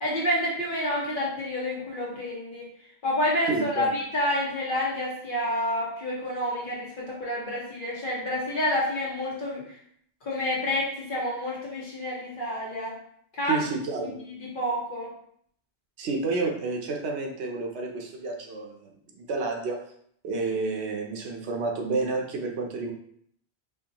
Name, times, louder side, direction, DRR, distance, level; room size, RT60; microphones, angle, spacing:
voice 1, 0.0-2.7 3.0-9.8 10.2-13.0 13.3-13.6 14.0-15.1, left 1 dB, 50° left, -5 dB, 1.3 m, -29 dB
voice 2, 3.5-3.9 13.5-14.2 16.0-19.8 20.2-22.9, right 3 dB, 75° right, 1 dB, 0.9 m, -30 dB
4.5 x 2.6 x 2.9 m, 0.66 s
omnidirectional pair, 1.2 m